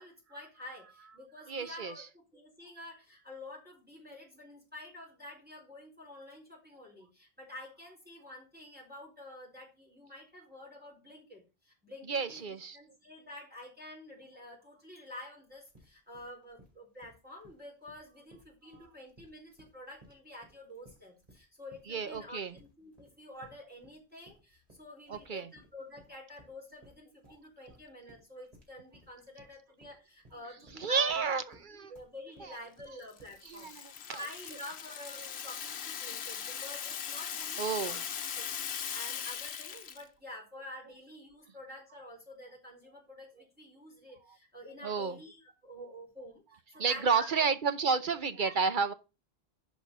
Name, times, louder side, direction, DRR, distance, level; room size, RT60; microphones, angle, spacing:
voice 1, 0.0-38.0 38.4-47.4 48.4-48.7, left 1 dB, 10° right, 4.4 m, -49 dB
voice 2, 1.5-1.9 12.1-12.8 21.9-22.5 25.1-25.5 30.8-31.4 31.8-31.9 32.4-32.5 33.4-34.2 37.6-38.0 44.8-45.2 46.7-48.9, right 5 dB, 50° right, 1.0 m, -31 dB
sound 1, 15.5-33.6, equal, 35° right, 3.4 m, -61 dB
Rattle (instrument), 33.1-40.0, left 8 dB, 80° left, 1.1 m, -39 dB
11.0 x 4.4 x 6.8 m
omnidirectional pair, 1.1 m